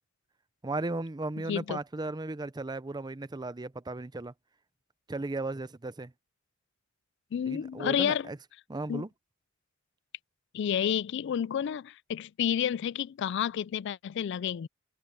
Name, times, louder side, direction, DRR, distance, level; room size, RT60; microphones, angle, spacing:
voice 1, 0.6-4.3 5.1-6.1 7.5-8.4 8.7-9.1, right 2 dB, 20° right, 0.6 m, -35 dB
voice 2, 1.5-1.8 7.3-8.3 8.9-9.0 10.5-14.7, left 8 dB, 60° left, 0.3 m, -30 dB
head